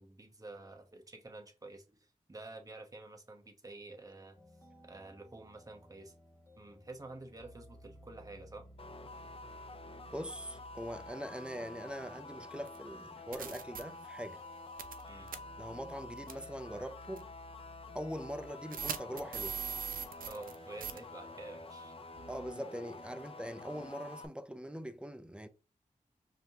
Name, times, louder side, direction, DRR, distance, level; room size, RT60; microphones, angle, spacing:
voice 1, 0.0-4.4 4.8-6.1 6.6-8.7 15.1-15.3 20.3-21.9, right 2 dB, 25° right, 0.9 m, -49 dB
sound 1, 4.3-22.5, equal, 20° left, 1.3 m, -57 dB
sound 2, 8.8-24.3, left 2 dB, 40° left, 0.5 m, -49 dB
voice 2, 10.1-14.4 15.6-17.3 17.9-19.6 22.3-25.5, equal, 5° right, 0.4 m, -42 dB
sound 3, 12.7-12.8 13.3-13.8 14.8-15.0 15.3-15.4 16.3-16.5 17.2-17.3 18.7-20.6 20.8-21.0, right 7 dB, 80° right, 0.4 m, -39 dB
5.1 x 2.7 x 2.8 m
wide cardioid pair, 70°, 14 cm